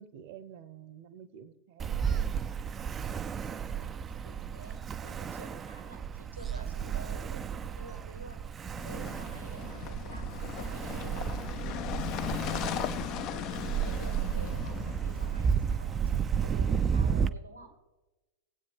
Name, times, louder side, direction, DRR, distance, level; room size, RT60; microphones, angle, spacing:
voice 1, 0.0-2.4, right 8 dB, 50° right, 13 dB, 0.9 m, -49 dB
Ocean, 1.8-17.3, right 7 dB, 20° right, 0.4 m, -33 dB
voice 2, 3.7-8.5 8.8-17.8, right 2 dB, 90° right, 6 dB, 1.8 m, -50 dB
sound 1, 8.8-15.8, left 12 dB, 40° left, 0.5 m, -38 dB
20.5 x 8.4 x 3.5 m, 1.1 s
figure-of-eight pair, 90°, 0 cm